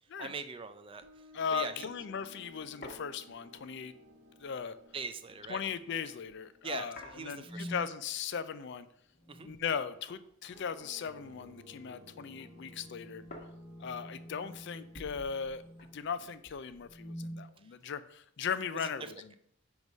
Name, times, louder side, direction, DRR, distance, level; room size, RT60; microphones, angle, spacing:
voice 1, 0.2-1.9 4.9-5.6 6.6-7.8 9.3-9.5 17.6-17.7 18.7-19.1, right 5 dB, 25° right, 10 dB, 0.4 m, -42 dB
sound 1, 1.0-9.1 10.5-17.1, left 1 dB, 80° right, 1.3 m, -58 dB
sound 2, 1.1-1.3 1.6-1.7 2.0-6.4 6.9-8.1 8.4-9.8 10.1-11.8 12.1-17.3, left 1 dB, 40° left, 1.2 m, -55 dB
voice 2, 1.3-3.9 4.4-4.8 5.5-8.9 9.4-13.2 13.8-15.6 15.9-19.3, left 6 dB, 55° left, 13 dB, 0.4 m, -38 dB
sound 3, 7.4-7.9 9.2-9.7 11.9-16.1 16.8-17.5, equal, 15° left, 1.5 m, -47 dB
5.4 x 4.7 x 5.2 m, 0.67 s
head